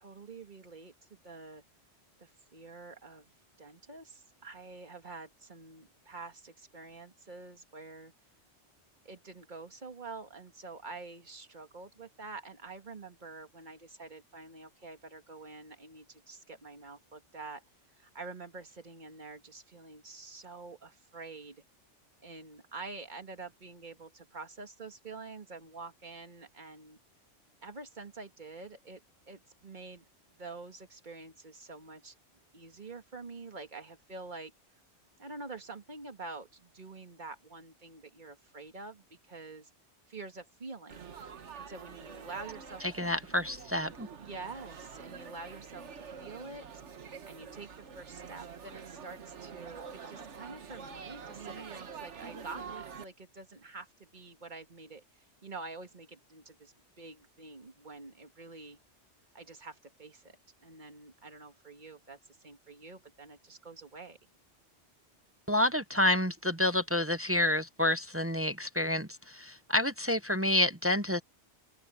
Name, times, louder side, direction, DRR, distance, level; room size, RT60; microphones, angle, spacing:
voice 1, 0.0-1.6 2.2-3.3 3.6-8.1 9.0-17.6 17.9-21.6 22.2-27.0 27.6-30.0 30.4-32.1 32.5-34.5 35.2-39.7 40.1-41.2 41.5-42.9 44.2-45.9 46.2-46.7 47.2-58.8 59.3-60.4 60.6-64.2, right 3 dB, 40° right, 2.1 m, -47 dB
Laughter / Chatter / Crowd, 40.9-53.0, right 6 dB, 80° right, 1.5 m, -46 dB
voice 2, 43.0-44.1 65.5-71.2, left 1 dB, 15° right, 0.7 m, -29 dB
open air
omnidirectional pair, 1.2 m